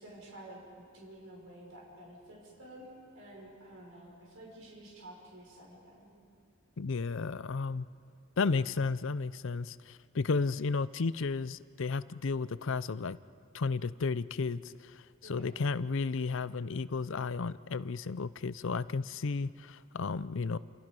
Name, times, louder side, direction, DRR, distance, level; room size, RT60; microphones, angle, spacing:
voice 1, 0.0-6.1 15.2-15.5, right 1 dB, 75° right, -2 dB, 5.9 m, -51 dB
voice 2, 6.8-7.9 8.4-13.2 13.5-20.6, left 4 dB, 65° left, 16 dB, 0.6 m, -33 dB
29.0 x 28.5 x 5.4 m, 2.4 s
head